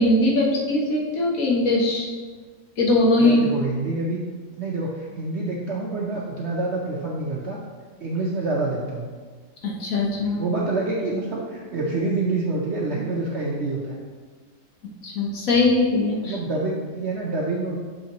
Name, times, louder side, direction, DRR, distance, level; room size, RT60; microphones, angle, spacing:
voice 1, 0.0-2.1 2.8-3.5 9.6-10.4 15.0-16.4, left 2 dB, 55° left, -2 dB, 1.3 m, -20 dB
voice 2, 3.2-4.2 4.6-7.6 8.0-9.1 10.4-14.0 16.2-17.8, right 2 dB, 60° right, -3 dB, 0.7 m, -27 dB
6.4 x 5.8 x 2.9 m, 1.5 s
omnidirectional pair, 1.8 m